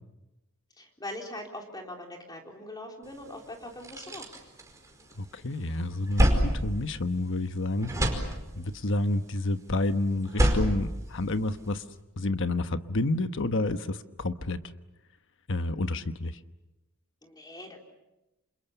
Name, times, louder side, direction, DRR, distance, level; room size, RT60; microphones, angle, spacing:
voice 1, 0.8-4.2 17.2-17.8, left 1 dB, 20° left, 1 dB, 3.9 m, -41 dB
sound 1, 3.2-3.3 3.6-5.3 5.7-7.5 7.8-8.8 10.1-11.8, equal, 15° right, 4.9 m, -28 dB
voice 2, 5.2-11.8 12.2-14.6 15.5-16.4, left 2 dB, 60° left, 10 dB, 1.1 m, -30 dB
29.5 x 27.5 x 6.9 m, 0.97 s
head